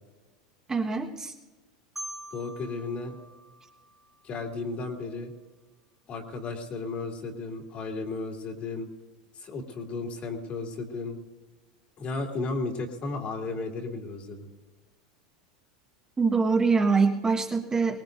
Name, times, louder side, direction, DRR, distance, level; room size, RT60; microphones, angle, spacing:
voice 1, 0.7-1.3 16.2-18.0, right 4 dB, 20° right, 0 dB, 1.5 m, -24 dB
Marimba xylophone, 2.0-4.8, right 1 dB, ahead, 1.5 m, -45 dB
voice 2, 2.3-3.1 4.2-5.3 6.1-8.9 9.4-11.2 12.0-14.5, left 3 dB, 40° left, 2 dB, 2.7 m, -34 dB
23.0 x 19.0 x 2.7 m, 1.2 s
hypercardioid pair, 100°, 3 cm